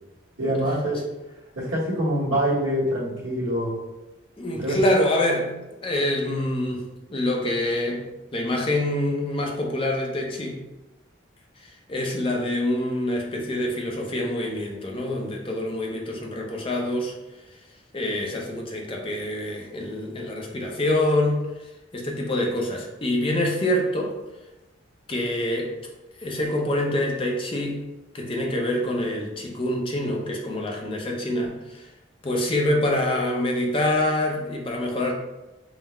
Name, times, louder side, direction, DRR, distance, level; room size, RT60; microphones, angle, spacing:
voice 1, 0.4-1.0 1.5-3.7 4.5-4.8, equal, 85° right, -8 dB, 1.3 m, -25 dB
voice 2, 4.4-5.5 5.8-10.6 11.6-17.1 17.9-21.4 21.9-24.1 25.1-25.7 26.2-27.8 28.1-31.8 32.2-35.1, left 1 dB, 30° left, 0 dB, 0.5 m, -26 dB
3.8 x 2.1 x 4.2 m, 1.0 s
head